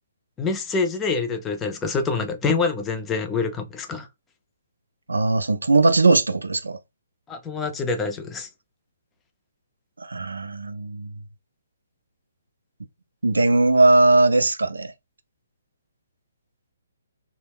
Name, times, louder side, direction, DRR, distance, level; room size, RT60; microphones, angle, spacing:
voice 1, 0.4-4.1 7.3-8.5, left 4 dB, 15° left, 0.5 m, -26 dB
voice 2, 5.1-6.8 10.0-11.1 13.2-14.9, right 2 dB, 90° right, 0.4 m, -19 dB
2.2 x 2.0 x 3.4 m
hypercardioid pair, 140°, 0 cm